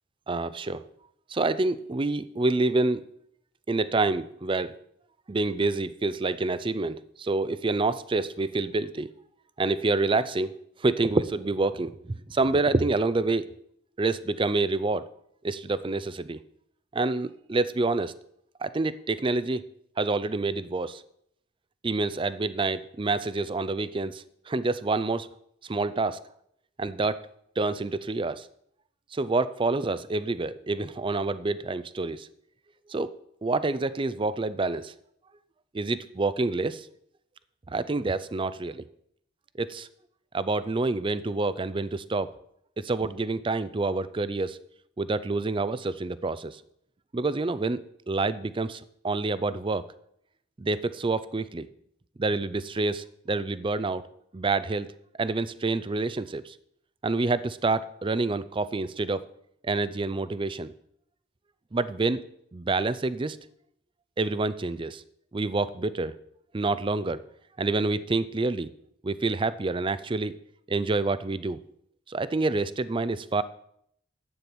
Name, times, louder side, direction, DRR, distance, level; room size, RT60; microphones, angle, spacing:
voice 1, 0.3-0.8 1.3-3.0 3.7-4.7 5.3-9.1 9.6-10.5 10.8-13.5 14.0-15.0 15.4-16.4 16.9-18.1 18.6-19.7 20.0-21.0 21.8-25.3 25.7-26.2 26.8-27.2 27.6-28.5 29.1-32.3 32.9-33.1 33.4-34.9 35.7-36.9 37.7-38.8 39.6-39.9 40.3-42.3 42.8-44.6 45.0-46.6 47.1-47.8 48.1-49.8 50.6-51.7 52.2-54.0 54.3-54.9 55.2-56.5 57.0-59.2 59.6-60.7 61.7-62.2 62.5-63.4 64.2-65.0 65.3-66.1 66.5-67.2 67.6-68.7 69.0-70.3 70.7-71.6 72.1-73.4, right 3 dB, 25° right, 15 dB, 0.4 m, -27 dB
11.0 x 8.7 x 6.1 m, 0.72 s
head